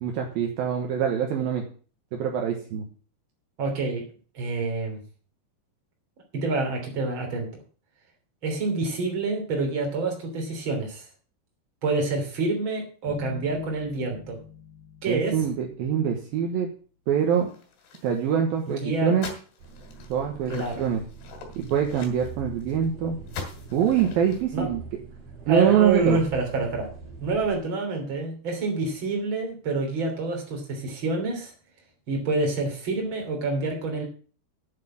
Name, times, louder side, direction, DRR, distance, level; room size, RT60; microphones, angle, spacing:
voice 1, 0.0-1.6 2.1-2.8 15.1-16.7 17.1-17.5 18.0-19.3 20.1-21.0 21.6-23.2 23.7-24.8 25.5-26.2, right 8 dB, 70° right, 2 dB, 2.9 m, -24 dB
voice 2, 3.6-4.0 4.3-5.0 6.3-7.5 8.4-11.1 11.8-14.4 15.0-15.4 18.8-19.1 20.5-20.8 24.5-24.7 25.5-26.9 27.2-31.5 32.1-34.0, right 3 dB, 30° right, 1 dB, 3.6 m, -27 dB
sound 1, 13.1-16.1, left 8 dB, 65° left, 5.1 m, -42 dB
sound 2, 17.3-18.3 18.6-18.8 19.1-22.8 23.3-24.4, left 5 dB, 80° left, 4.5 m, -42 dB
sound 3, 19.6-27.6, right 4 dB, 50° right, 4.7 m, -43 dB
9.3 x 7.4 x 7.4 m, 0.40 s
omnidirectional pair, 4.7 m